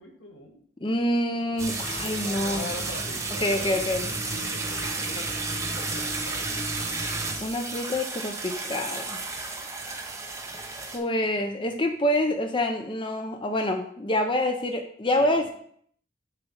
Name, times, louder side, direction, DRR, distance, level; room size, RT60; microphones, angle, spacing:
voice 1, 0.0-0.6 2.2-6.5 11.4-11.5 15.2-15.5, left 2 dB, 85° left, 1 dB, 1.6 m, -42 dB
voice 2, 0.8-2.7 3.4-4.1 7.4-9.2 10.9-15.5, left 1 dB, 25° left, 5 dB, 0.5 m, -26 dB
sound 1, 1.6-11.0, right 3 dB, 15° right, 0.9 m, -32 dB
6.9 x 4.2 x 5.6 m, 0.63 s
head